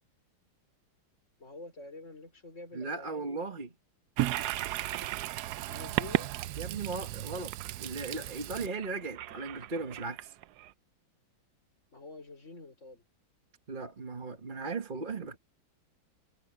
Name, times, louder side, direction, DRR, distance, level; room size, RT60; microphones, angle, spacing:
voice 1, 1.4-3.5 5.7-6.3 11.9-13.0, left 3 dB, 35° left, 5.2 m, -47 dB
voice 2, 2.7-3.7 6.6-7.5 7.8-10.3 13.7-15.4, right 3 dB, 30° right, 1.4 m, -37 dB
Toilet flush, 4.2-10.7, right 15 dB, 75° right, 0.9 m, -35 dB
omnidirectional pair, 2.1 m